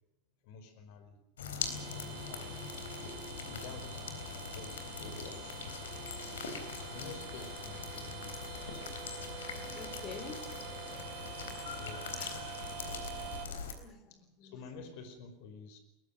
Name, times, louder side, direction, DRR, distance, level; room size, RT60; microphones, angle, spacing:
voice 1, 0.4-1.2 1.9-2.7 3.3-4.2 4.5-5.6 6.5-8.9 11.8-12.1 14.1-15.8, left 4 dB, 55° left, 8 dB, 5.0 m, -50 dB
sound 1, 1.4-13.7, left 5 dB, 75° left, 3.8 m, -42 dB
sound 2, 1.6-13.5, right 10 dB, 45° right, 3.5 m, -47 dB
voice 2, 9.8-10.5 11.0-11.8 12.2-12.3 13.8-14.5, left 6 dB, 40° left, 9 dB, 4.4 m, -49 dB
22.0 x 20.5 x 6.5 m, 0.89 s
figure-of-eight pair, 80°, 0 cm